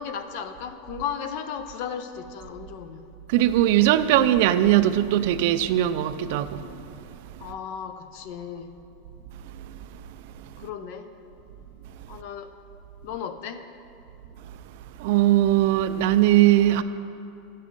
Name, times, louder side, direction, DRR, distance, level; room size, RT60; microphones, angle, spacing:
voice 1, 0.0-3.0 7.4-8.7 10.6-11.1 12.1-12.6 13.0-13.6, left 7 dB, 45° left, 0.5 m, -35 dB
voice 2, 3.3-6.7 10.4-10.7 15.0-16.8, right 13 dB, 50° right, 0.3 m, -20 dB
9.8 x 6.5 x 5.2 m
supercardioid pair, 175°, 0 cm